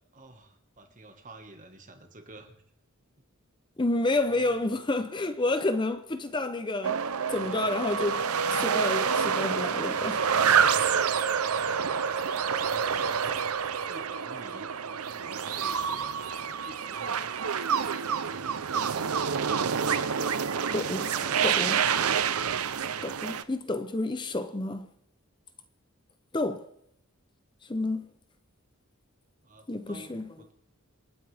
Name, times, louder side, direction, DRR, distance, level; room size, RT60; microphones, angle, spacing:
voice 1, 0.1-2.5 4.3-4.6 9.9-13.3 13.9-14.7 15.0-17.3 20.4-21.4 29.4-30.5, right 2 dB, 35° right, 1.6 m, -49 dB
voice 2, 3.8-7.0 7.3-8.3 8.5-10.2 20.7-21.1 21.4-21.8 23.0-24.9 26.3-26.7 27.7-28.0 29.7-30.3, left 2 dB, 20° left, 0.6 m, -29 dB
sound 1, 6.8-23.4, right 7 dB, 85° right, 0.7 m, -28 dB
27.5 x 9.3 x 3.5 m
head